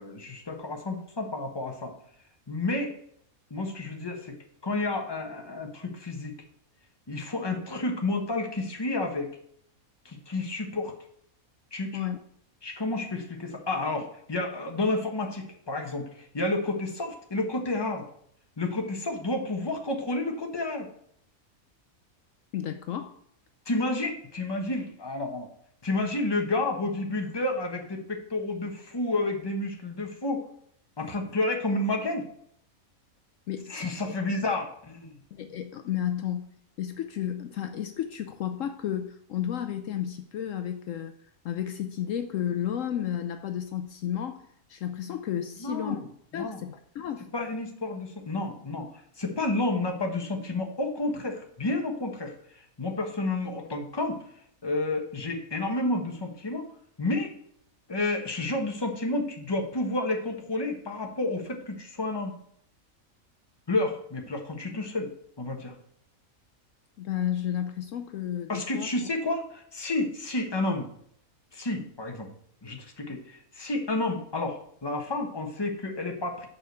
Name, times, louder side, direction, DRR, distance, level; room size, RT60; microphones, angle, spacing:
voice 1, 0.0-1.9 2.5-3.0 3.5-4.4 4.6-6.3 7.1-9.4 10.0-10.9 11.7-12.0 12.6-18.0 18.6-20.9 23.7-25.5 25.8-30.5 31.0-32.3 33.7-35.2 45.6-46.1 46.3-46.6 47.3-48.9 49.2-54.2 54.6-56.7 57.0-57.4 57.9-62.3 63.7-65.1 65.4-65.7 68.5-70.9 71.5-72.3 72.6-76.5, left 2 dB, 20° left, 3 dB, 1.2 m, -30 dB
voice 2, 22.5-23.2 33.5-33.7 34.1-34.2 35.3-36.5 36.8-41.1 41.4-46.0 46.3-47.3 67.0-68.9, left 10 dB, 70° left, 8 dB, 0.9 m, -32 dB
7.0 x 4.9 x 6.8 m, 0.67 s
omnidirectional pair, 1.5 m